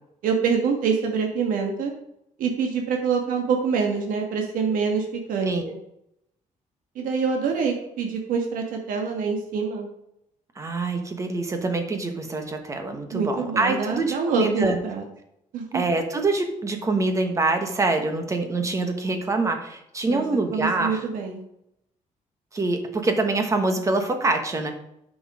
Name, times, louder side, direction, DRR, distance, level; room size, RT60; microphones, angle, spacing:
voice 1, 0.2-1.9 2.4-5.8 6.9-9.9 13.1-15.0 15.5-15.8 20.1-20.2 20.5-21.4, right 5 dB, 80° right, 2 dB, 1.5 m, -25 dB
voice 2, 5.4-5.7 10.6-14.8 15.7-21.0 22.5-24.7, right 3 dB, 20° right, 6 dB, 1.2 m, -25 dB
10.0 x 6.4 x 4.8 m, 0.79 s
cardioid pair, 160°, 14 cm